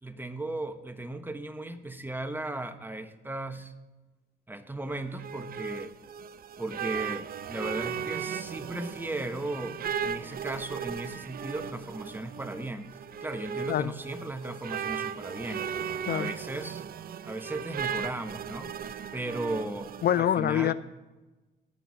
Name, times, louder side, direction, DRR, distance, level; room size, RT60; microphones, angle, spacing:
voice 1, 0.0-3.7 4.5-5.9 6.6-12.9 13.2-16.8 17.2-20.7, right 2 dB, 10° right, 9 dB, 1.1 m, -36 dB
sound 1, 4.9-20.2, right 7 dB, 50° right, 0.5 m, -37 dB
voice 2, 20.0-20.7, left 11 dB, 55° left, 17 dB, 0.4 m, -25 dB
18.0 x 6.1 x 6.2 m, 1.1 s
cardioid pair, 90°, 20 cm